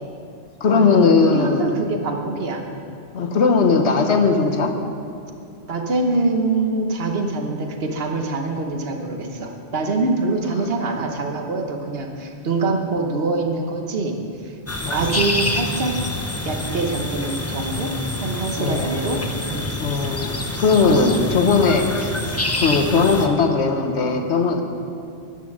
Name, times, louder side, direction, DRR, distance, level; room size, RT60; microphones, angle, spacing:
voice 1, 0.6-1.8 3.1-4.7 14.8-15.1 18.6-19.1 19.8-22.1 22.6-24.6, left 4 dB, 80° left, 5 dB, 1.3 m, -18 dB
voice 2, 1.3-2.6 5.7-14.2 14.4-14.6 14.9-16.0 16.4-17.9 18.2-19.7, right 3 dB, 60° right, 3 dB, 1.3 m, -24 dB
sound 1, 14.7-23.3, left 2 dB, 15° left, 0.6 m, -27 dB
10.5 x 9.9 x 6.5 m, 2.4 s
omnidirectional pair, 1.1 m